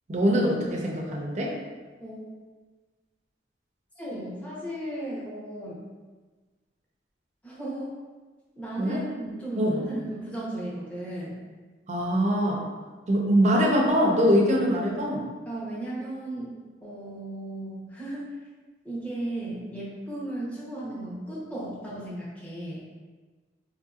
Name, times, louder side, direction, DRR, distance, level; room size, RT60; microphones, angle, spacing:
voice 1, 0.1-1.5 8.8-9.0 9.6-9.7 11.9-12.6 13.1-15.2, equal, 40° right, -1 dB, 0.5 m, -23 dB
voice 2, 4.0-5.8 7.4-7.9 8.6-11.4 15.5-16.5 16.8-18.3 18.8-22.9, right 1 dB, 10° left, -7 dB, 0.8 m, -35 dB
4.4 x 2.7 x 2.4 m, 1.3 s
head